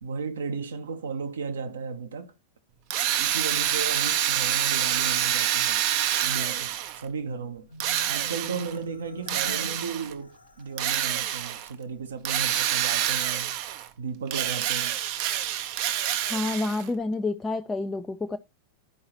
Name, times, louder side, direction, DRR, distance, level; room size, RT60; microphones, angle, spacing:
voice 1, 0.0-2.3 3.2-5.8 6.2-7.7 8.1-13.6 14.0-15.0, right 5 dB, 65° right, 0.9 m, -35 dB
Drill, 2.9-7.0 7.8-8.8 9.3-10.1 10.8-11.7 12.2-13.9 14.3-16.9, right 11 dB, 45° right, 0.6 m, -27 dB
Marimba xylophone, 7.7-11.0, left 2 dB, 80° left, 0.6 m, -45 dB
voice 2, 16.3-18.4, left 3 dB, 15° left, 0.4 m, -28 dB
12.0 x 4.7 x 2.9 m
figure-of-eight pair, 90°, 0 cm